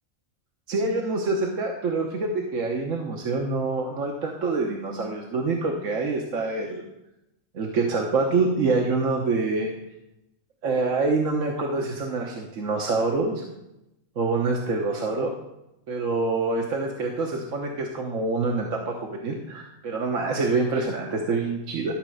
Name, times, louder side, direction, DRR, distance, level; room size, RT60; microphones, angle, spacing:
voice 1, 0.7-6.9 7.5-9.7 10.6-13.4 14.2-15.3 15.9-21.9, right 3 dB, 70° right, 0 dB, 1.3 m, -26 dB
12.5 x 4.3 x 6.4 m, 0.89 s
omnidirectional pair, 1.4 m